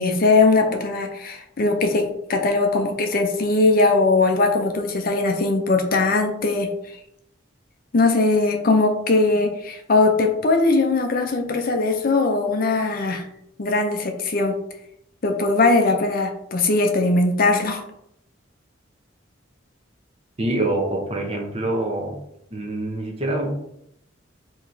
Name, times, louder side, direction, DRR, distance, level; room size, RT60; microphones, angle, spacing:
voice 1, 0.0-2.0 2.3-6.7 7.9-13.3 13.6-14.6 15.2-17.8, left 3 dB, 45° left, 5 dB, 0.5 m, -20 dB
voice 2, 20.4-22.2 22.5-23.5, right 1 dB, 30° right, 0 dB, 0.8 m, -25 dB
4.7 x 2.9 x 2.7 m, 0.76 s
head